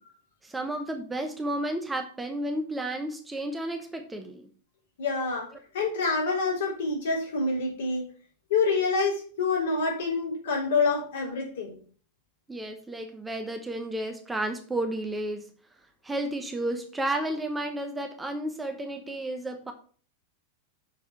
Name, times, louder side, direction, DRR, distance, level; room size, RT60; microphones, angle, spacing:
voice 1, 0.4-4.5 12.5-15.5 16.0-19.7, right 1 dB, 10° right, 5 dB, 0.9 m, -32 dB
voice 2, 5.0-5.5 5.7-8.1 8.5-11.8, left 4 dB, 60° left, -3 dB, 3.7 m, -27 dB
6.5 x 5.3 x 5.7 m, 0.43 s
figure-of-eight pair, 90°, 0 cm